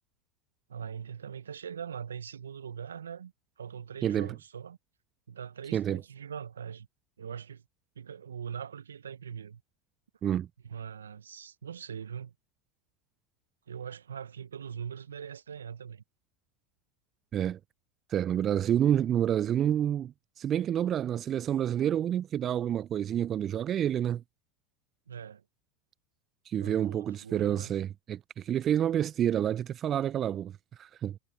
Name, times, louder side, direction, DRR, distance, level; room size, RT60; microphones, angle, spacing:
voice 1, 0.7-3.3 3.6-4.8 5.3-6.9 7.2-7.6 7.9-9.6 10.6-12.3 13.7-16.0 25.1-25.4 26.6-27.7, right 7 dB, 80° right, 1.2 m, -41 dB
voice 2, 4.0-4.4 5.7-6.0 10.2-10.5 17.3-17.6 18.1-24.2 26.5-31.2, right 10 dB, 35° right, 0.7 m, -29 dB
figure-of-eight pair, 80°, 0 cm